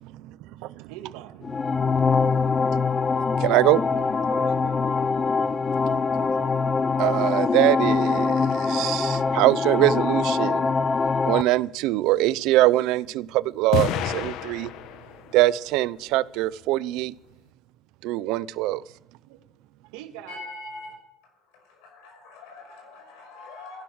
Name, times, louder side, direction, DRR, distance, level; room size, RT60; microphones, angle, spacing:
voice 1, 0.0-0.4 0.6-0.9 2.1-2.2 3.4-3.8 7.0-10.7 11.2-14.7 15.3-17.1 18.0-18.8, right 16 dB, 65° right, 0.6 m, -23 dB
voice 2, 0.9-1.4 3.8-4.9 5.8-5.9 19.3-19.4 19.9-20.5, right 12 dB, 90° right, 1.9 m, -43 dB
sound 1, 1.4-11.4, left 4 dB, 20° left, 0.5 m, -23 dB
sound 2, 13.7-15.3, left 9 dB, 60° left, 1.0 m, -29 dB
voice 3, 20.3-21.0 21.2-23.8, left 2 dB, 80° left, 5.7 m, -42 dB
15.0 x 12.0 x 6.4 m
cardioid pair, 155°, 0 cm